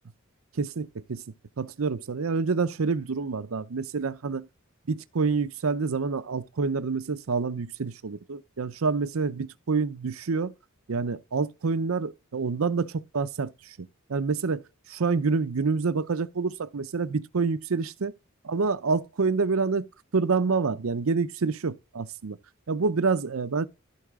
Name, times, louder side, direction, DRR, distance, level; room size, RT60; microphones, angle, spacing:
voice 1, 0.5-1.2 1.6-4.5 4.9-10.5 10.9-14.6 14.9-18.1 18.4-19.9 20.1-22.4 22.7-23.7, right 4 dB, 85° right, 0.6 m, -27 dB
14.5 x 4.8 x 3.6 m
head